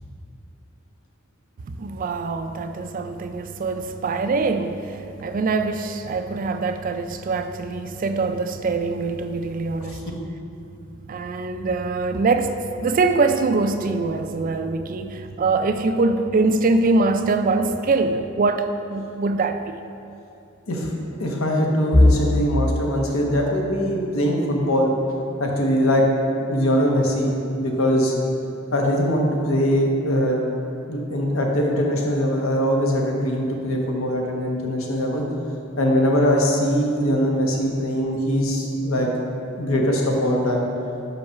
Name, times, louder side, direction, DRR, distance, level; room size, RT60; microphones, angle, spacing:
voice 1, 1.7-10.0 11.1-19.8, right 3 dB, 40° right, 8 dB, 0.3 m, -23 dB
voice 2, 21.2-24.9 25.4-26.0 26.5-28.1 28.7-30.5 30.9-35.2 35.8-39.1 39.6-40.7, equal, 85° left, 0 dB, 1.0 m, -21 dB
sound 1, 21.9-33.8 34.2-34.4 34.8-35.0 35.9-36.3, left 1 dB, 50° left, 0.7 m, -28 dB
5.4 x 4.7 x 5.7 m, 2.7 s
head